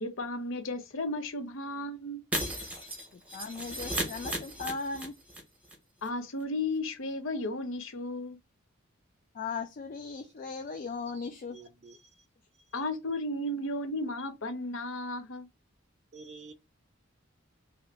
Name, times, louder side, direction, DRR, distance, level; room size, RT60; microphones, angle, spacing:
voice 1, 0.0-2.2 6.0-8.4 12.7-15.5, left 2 dB, 80° left, 0.7 m, -34 dB
Shatter, 2.3-5.4 5.6-5.7 6.1-6.2, right 1 dB, 5° right, 0.8 m, -35 dB
voice 2, 3.1-5.1 9.3-11.6, left 4 dB, 45° left, 0.3 m, -38 dB
voice 3, 10.1-10.6 11.1-11.2 11.5-12.3 12.7-12.8 16.1-16.5, right 4 dB, 35° right, 0.4 m, -51 dB
2.7 x 2.5 x 3.2 m
head